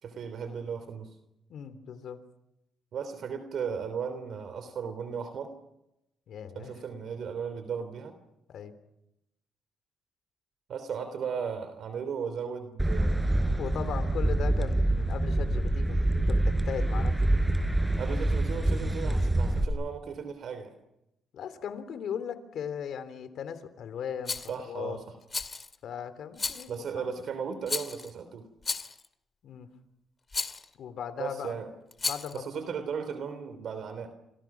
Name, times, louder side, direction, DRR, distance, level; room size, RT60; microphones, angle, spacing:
voice 1, 0.0-1.1 2.9-5.5 6.5-8.1 10.7-13.2 18.0-20.8 24.5-25.0 26.7-28.5 31.2-31.7 32.3-34.1, right 6 dB, 65° right, 9 dB, 3.2 m, -36 dB
voice 2, 1.5-2.2 6.3-6.7 8.5-8.7 13.6-17.2 21.3-25.0 25.8-27.1 29.4-29.7 30.8-31.6 32.0-32.4 32.7-32.8, left 8 dB, 70° left, 12 dB, 3.4 m, -38 dB
sound 1, 12.8-19.7, right 1 dB, 10° right, 4.2 m, -26 dB
Rattle, 24.3-24.5 25.3-25.8 26.4-26.8 27.7-28.1 28.6-29.1 30.3-30.7 31.9-32.4, left 4 dB, 30° left, 2.2 m, -33 dB
29.5 x 26.5 x 6.1 m, 0.87 s
cardioid pair, 90°, 0 cm